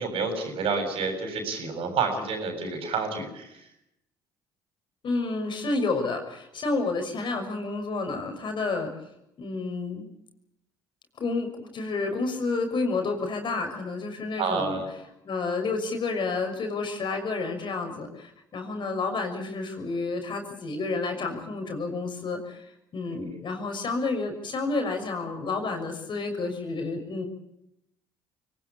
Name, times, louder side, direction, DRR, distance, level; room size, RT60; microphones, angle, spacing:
voice 1, 0.0-3.6 14.4-14.9 23.1-23.3, right 4 dB, 60° right, 6 dB, 7.4 m, -29 dB
voice 2, 5.0-8.9 9.4-10.1 11.2-14.8 15.2-27.3, left 3 dB, 50° left, 5 dB, 6.1 m, -30 dB
24.0 x 18.5 x 8.7 m, 0.81 s
hypercardioid pair, 60°, 10 cm